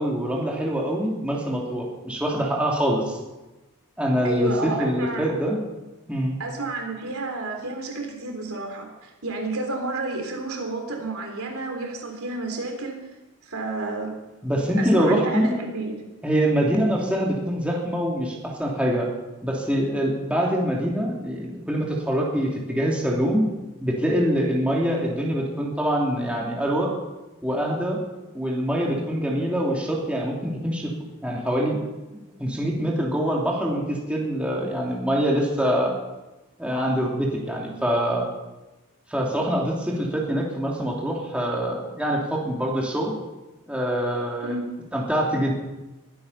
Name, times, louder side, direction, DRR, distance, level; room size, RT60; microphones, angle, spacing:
voice 1, 0.0-3.2 4.0-5.6 6.1-6.4 14.4-15.5 16.2-19.1 19.4-23.4 23.8-26.9 27.4-28.0 28.3-30.9 31.2-31.8 32.4-35.9 36.6-38.3 39.1-43.1 43.7-44.6 44.9-45.5, equal, 5° right, -3 dB, 2.7 m, -24 dB
voice 2, 4.2-5.3 6.4-13.0 13.4-14.1 14.8-16.1 44.4-44.7, right 2 dB, 80° right, 2 dB, 3.6 m, -30 dB
22.0 x 9.6 x 5.5 m, 1.1 s
head